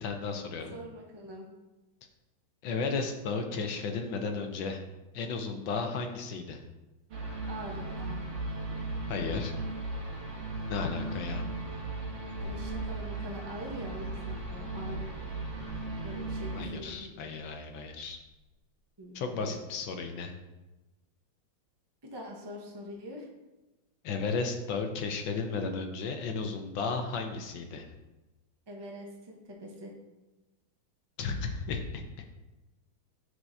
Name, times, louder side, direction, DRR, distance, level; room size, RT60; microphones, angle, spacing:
voice 1, 0.0-0.7 2.6-4.8 5.1-6.6 9.1-9.5 10.7-11.4 16.5-18.2 19.1-20.3 24.0-27.8 31.2-32.0, left 4 dB, 75° left, 4 dB, 1.5 m, -34 dB
voice 2, 0.7-1.5 7.5-8.2 12.2-15.1 16.0-17.1 19.0-19.7 22.0-23.3 28.7-29.9, equal, 30° right, -1 dB, 0.4 m, -44 dB
sound 1, 7.1-16.7, right 2 dB, 80° right, 2.2 m, -37 dB
sound 2, 17.1-18.6, right 1 dB, 30° left, 1.6 m, -48 dB
9.7 x 6.2 x 2.7 m, 1.1 s
omnidirectional pair, 2.2 m